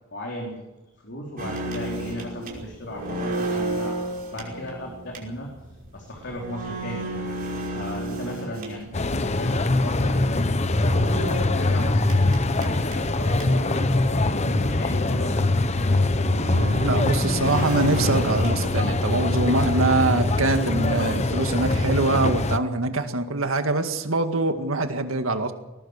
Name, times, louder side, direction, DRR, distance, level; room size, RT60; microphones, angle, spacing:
voice 1, 0.1-0.6 1.0-5.5 5.9-7.2 7.7-16.4, left 1 dB, 60° left, 0 dB, 3.8 m, -36 dB
sound 1, 1.4-9.2 10.7-13.7 14.1-14.2 14.5-14.6 15.3-15.4 16.0-19.2 19.5-20.6, right 1 dB, 45° right, 5.3 m, -33 dB
sound 2, 8.9-22.6, left 2 dB, 35° left, 0.9 m, -23 dB
voice 2, 16.8-25.5, right 2 dB, 80° right, 7 dB, 2.0 m, -24 dB
21.0 x 19.0 x 6.6 m, 1.0 s
head